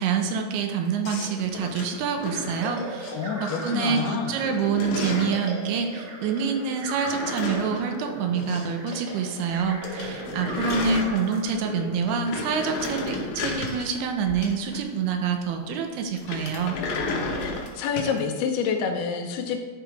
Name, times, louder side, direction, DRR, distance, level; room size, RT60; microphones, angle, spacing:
voice 1, 0.0-16.8, right 6 dB, 80° right, 4 dB, 2.7 m, -27 dB
sound 1, 1.0-3.1 3.5-4.0 4.3-5.5 6.8-8.9 9.2-9.3 9.6-9.7 9.8-11.6 12.0-15.1 16.1-18.2, left 3 dB, 70° left, 2.0 m, -33 dB
sound 2, 2.3-12.9, right 1 dB, 55° right, 2.6 m, -38 dB
voice 2, 3.1-4.4 17.4-19.6, left 6 dB, 85° left, 4 dB, 2.8 m, -28 dB
11.0 x 3.9 x 4.6 m, 1.4 s
omnidirectional pair, 4.5 m